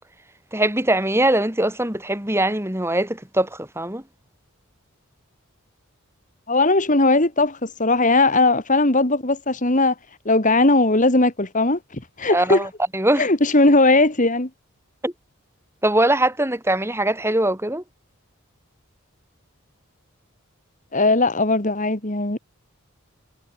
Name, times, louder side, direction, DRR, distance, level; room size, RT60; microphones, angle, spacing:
voice 1, 0.5-4.0 12.3-13.2 15.0-15.1 15.8-17.8, right 1 dB, 10° right, 3.5 m, -21 dB
voice 2, 6.5-9.9 10.3-11.8 12.2-12.7 13.2-14.5 20.9-22.4, left 2 dB, 35° left, 2.2 m, -18 dB
head